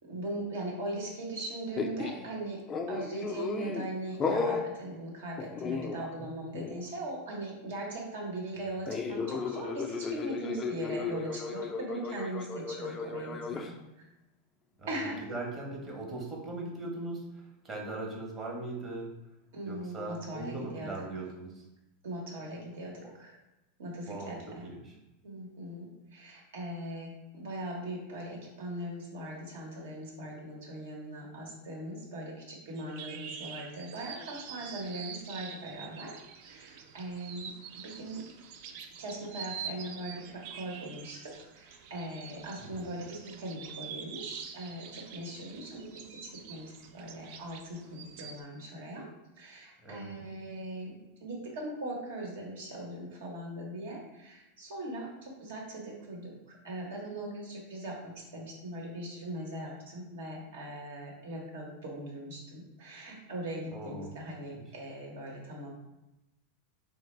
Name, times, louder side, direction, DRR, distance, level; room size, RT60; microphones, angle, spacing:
voice 1, 0.0-2.6 2.9-13.7 14.9-15.2 19.5-20.9 22.0-23.3 23.8-24.6 25.2-36.1 36.4-38.2 39.0-49.1 49.4-65.7, right 1 dB, 75° right, -2 dB, 0.9 m, -40 dB
sound 1, 1.7-2.3 2.7-3.9 4.2-4.7 5.4-6.3 6.5-6.8 8.9-13.7, left 5 dB, 30° left, 0.3 m, -34 dB
voice 2, 15.3-19.1 19.7-21.6 24.1-24.4 24.6-24.9 42.6-42.9 49.8-50.2 63.7-64.1 64.5-64.6, right 2 dB, 25° right, -1 dB, 0.9 m, -39 dB
sound 2, 32.7-48.4, right 7 dB, 60° right, 0.3 m, -46 dB
3.2 x 2.1 x 3.1 m, 0.97 s
hypercardioid pair, 100°, 0 cm